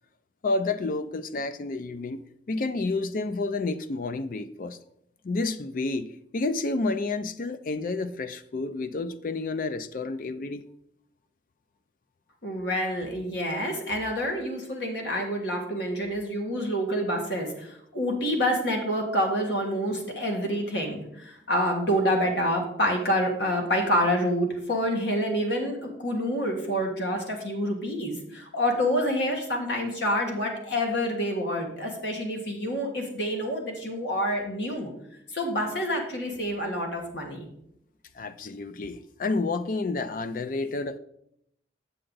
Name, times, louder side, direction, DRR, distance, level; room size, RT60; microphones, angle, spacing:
voice 1, 0.4-2.2 2.5-4.8 5.2-10.6 38.2-41.0, left 3 dB, 50° left, 0.4 m, -30 dB
voice 2, 12.4-34.9 35.3-37.5, equal, 75° left, 1.7 m, -27 dB
7.6 x 6.8 x 3.9 m
head